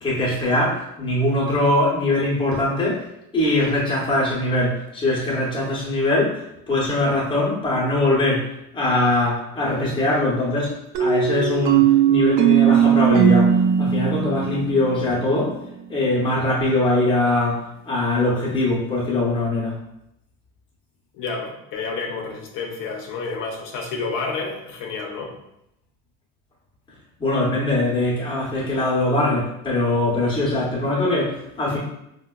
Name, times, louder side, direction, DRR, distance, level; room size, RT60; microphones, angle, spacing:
voice 1, 0.0-3.0 3.3-15.5 15.9-19.8 27.2-31.8, left 2 dB, 15° left, -5 dB, 0.6 m, -22 dB
sound 1, 10.9-15.6, right 8 dB, 60° right, 0.5 m, -18 dB
voice 2, 21.1-25.3, left 4 dB, 60° left, 1 dB, 0.6 m, -30 dB
4.6 x 2.1 x 2.2 m, 0.81 s
cardioid pair, 160°, 37 cm